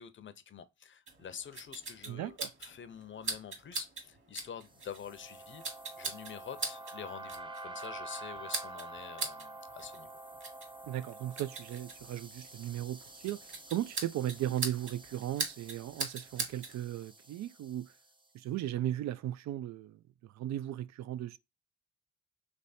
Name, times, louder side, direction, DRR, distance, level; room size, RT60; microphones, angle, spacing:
voice 1, 0.0-5.6 6.0-10.1, left 8 dB, 40° left, 0.6 m, -47 dB
sound 1, 1.1-16.8, right 3 dB, 40° right, 1.7 m, -42 dB
voice 2, 2.1-2.5 10.9-13.5 13.7-17.9 18.3-21.4, right 13 dB, 65° right, 0.4 m, -37 dB
sound 2, 4.7-18.1, right 2 dB, 15° right, 0.6 m, -48 dB
3.4 x 3.2 x 4.1 m
cardioid pair, 90°, 30 cm